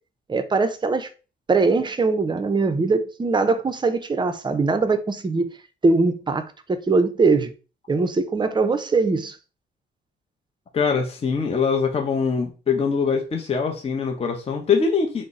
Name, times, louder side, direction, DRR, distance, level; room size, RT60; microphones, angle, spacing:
voice 1, 0.3-1.1 1.5-5.5 5.8-7.5 7.9-9.4, right 3 dB, 25° right, 0.5 m, -21 dB
voice 2, 10.7-15.2, left 5 dB, 30° left, 0.6 m, -23 dB
3.8 x 2.0 x 3.8 m
cardioid pair, 90°, 20 cm